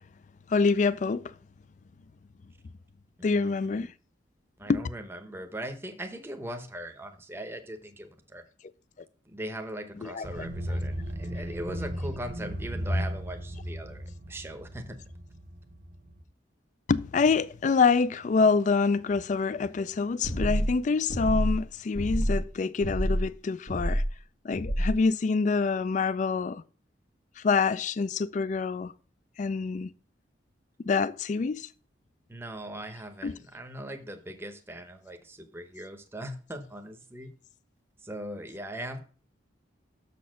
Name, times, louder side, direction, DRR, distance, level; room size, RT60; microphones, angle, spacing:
voice 1, 0.5-1.3 3.2-3.9 4.7-4.8 10.0-10.5 16.9-24.0 24.4-26.6 27.4-28.9 29.4-29.9 30.8-31.7 33.2-33.3, left 4 dB, 40° left, 0.3 m, -26 dB
voice 2, 3.2-3.9 4.6-8.4 9.3-14.8 32.3-37.3 38.0-39.0, right 1 dB, 15° right, 0.8 m, -40 dB
sound 1, 10.2-16.2, equal, 40° right, 0.8 m, -35 dB
sound 2, 20.2-20.7 21.1-21.6 21.9-22.4 22.8-23.3 23.7-24.1 24.5-24.9, equal, 65° left, 1.2 m, -27 dB
6.7 x 4.3 x 6.2 m
head